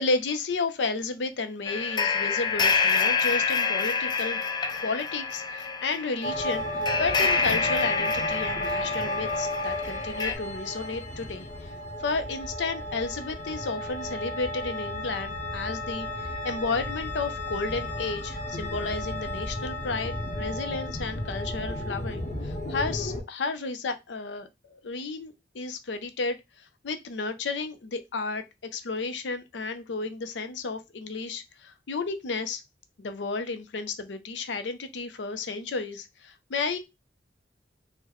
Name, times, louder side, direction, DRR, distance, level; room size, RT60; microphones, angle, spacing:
voice 1, 0.0-4.4 4.8-11.7 12.0-28.4 28.7-32.6 33.0-36.9, left 3 dB, 85° left, 0.5 m, -32 dB
sound 1, 1.6-10.3, left 5 dB, 25° left, 0.3 m, -27 dB
sound 2, 6.2-23.2, left 1 dB, 45° left, 0.7 m, -33 dB
3.7 x 2.1 x 3.0 m
head